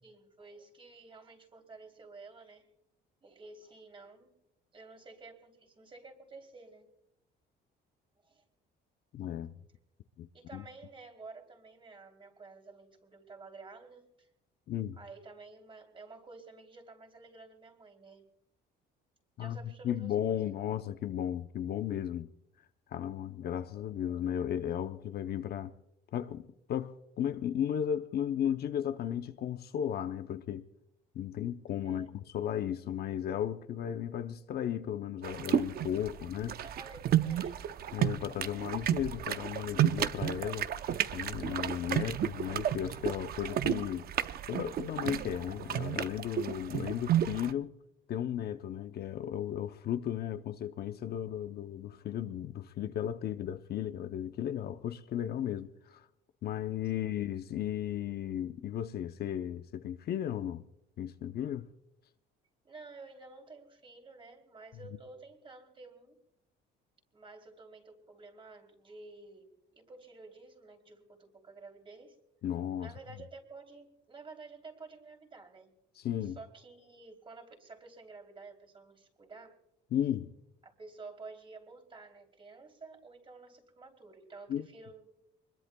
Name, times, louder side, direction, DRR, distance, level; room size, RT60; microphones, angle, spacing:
voice 1, 0.0-2.7 3.2-4.3 4.7-6.9 8.2-8.4 10.3-14.3 15.0-18.2 19.4-20.5 31.8-32.1 36.1-36.2 36.6-37.6 56.9-57.1 62.6-66.2 67.1-72.2 72.8-75.7 76.2-79.6 80.6-85.1, right 3 dB, 25° right, 3.2 m, -51 dB
voice 2, 9.1-9.6 10.2-10.6 14.7-15.0 19.4-22.3 22.9-25.7 26.1-30.7 31.1-36.6 37.9-40.7 41.1-44.1 44.5-47.7 48.1-56.1 56.4-60.7 61.0-61.7 72.4-72.9 76.0-76.4 79.9-80.3 84.5-84.7, left 10 dB, 55° left, 0.7 m, -35 dB
sound 1, 35.2-47.5, right 11 dB, 50° right, 0.7 m, -32 dB
25.0 x 21.5 x 2.3 m
cardioid pair, 125°, 20 cm